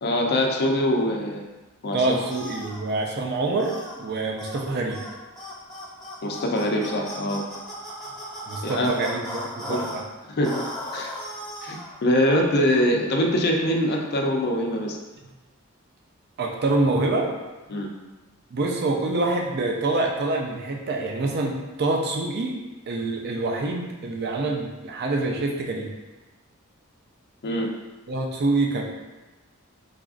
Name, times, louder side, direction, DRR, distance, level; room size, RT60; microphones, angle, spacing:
voice 1, 0.0-1.5 1.8-2.1 6.2-7.4 8.6-9.0 9.7-9.9 10.3-10.7 10.9-11.1 11.6-15.0 17.7-17.9 27.4-27.7, equal, 50° left, 1 dB, 0.4 m, -23 dB
voice 2, 1.9-5.0 8.5-10.0 16.4-17.3 18.5-21.5 21.8-22.5 22.9-25.9 28.1-28.8, right 2 dB, 50° right, 1 dB, 0.5 m, -26 dB
sound 1, 2.3-2.8 3.6-4.0 4.4-4.6 4.9-5.1 5.4-10.0 10.4-11.9, equal, ahead, 0.9 m, -36 dB
3.9 x 2.4 x 2.4 m, 1.1 s
head